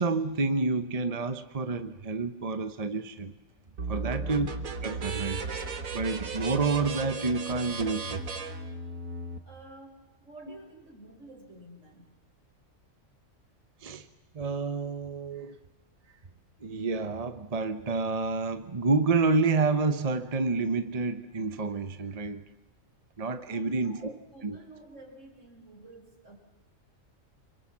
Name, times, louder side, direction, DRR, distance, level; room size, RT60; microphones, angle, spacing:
voice 1, 0.0-3.3 3.9-4.5 4.8-5.4 5.9-8.2 13.8-14.1 14.3-15.6 16.6-22.4 23.2-24.1 24.4-24.6, right 4 dB, 30° right, 10 dB, 0.9 m, -29 dB
sound 1, 3.8-9.4, right 3 dB, 80° right, 1.9 m, -35 dB
voice 2, 3.9-4.3 9.4-12.1 23.5-26.4, right 2 dB, 65° right, 4 dB, 4.8 m, -50 dB
26.0 x 23.5 x 7.3 m, 1.1 s
omnidirectional pair, 1.4 m